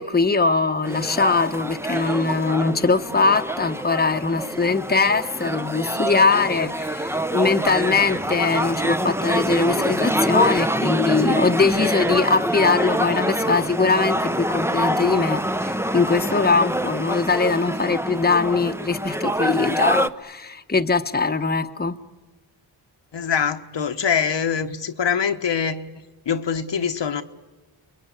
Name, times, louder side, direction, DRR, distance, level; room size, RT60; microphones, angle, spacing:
voice 1, 0.0-21.9, left 4 dB, 20° left, 1.1 m, -21 dB
sound 1, 0.8-20.1, right 1 dB, 5° right, 0.8 m, -25 dB
voice 2, 23.1-25.9 26.3-27.2, left 7 dB, 60° left, 1.3 m, -24 dB
28.0 x 21.0 x 9.8 m
cardioid pair, 60°, 47 cm